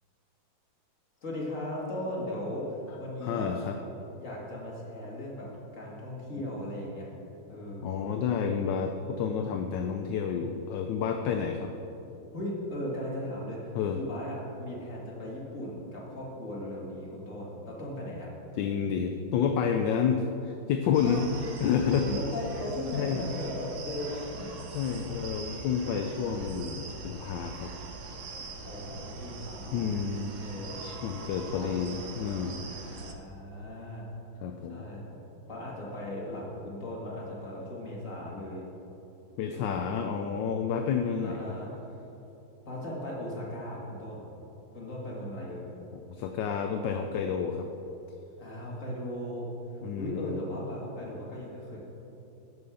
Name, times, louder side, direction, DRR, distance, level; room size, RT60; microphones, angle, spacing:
voice 1, 1.2-3.5 4.2-7.1 7.5-8.1 12.3-18.3 21.0-21.2 22.0-24.6 28.6-29.9 30.4-30.8 31.5-31.7 32.7-34.1 34.6-35.0 35.5-38.6 39.5-40.1 41.2-41.8 42.7-44.3 44.7-45.7 48.4-49.5 50.0-51.8, left 1 dB, 40° left, -4 dB, 2.4 m, -37 dB
voice 2, 3.2-3.8 7.8-11.7 13.7-14.0 18.6-21.2 21.6-22.1 22.9-23.2 24.7-27.7 29.7-30.5 30.8-32.6 34.4-34.9 39.4-41.6 45.9-47.7 49.8-50.4, left 7 dB, 75° left, 4 dB, 1.2 m, -30 dB
sound 1, 20.9-33.1, right 3 dB, 50° right, 1.0 m, -42 dB
9.4 x 6.5 x 7.0 m, 3.0 s
omnidirectional pair, 2.1 m